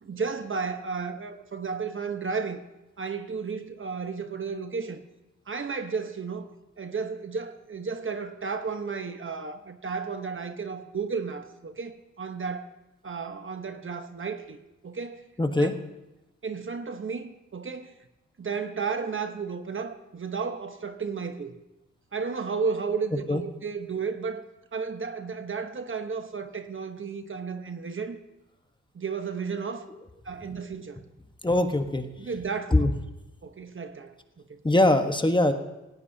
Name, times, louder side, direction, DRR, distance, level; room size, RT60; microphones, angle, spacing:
voice 1, 0.0-2.6 3.0-5.0 5.5-6.5 6.8-12.7 13.0-15.2 15.6-15.7 16.4-17.9 18.4-21.5 22.1-24.4 24.7-28.2 28.9-29.9 30.2-31.0 32.2-32.9 33.4-34.1 34.5-34.6, right 5 dB, 45° right, 8 dB, 1.1 m, -33 dB
voice 2, 15.4-15.7 23.3-23.4 31.4-32.0 32.7-32.9 34.6-35.5, left 1 dB, 15° left, 6 dB, 1.2 m, -22 dB
17.5 x 17.0 x 2.8 m, 0.98 s
cardioid pair, 60°, 29 cm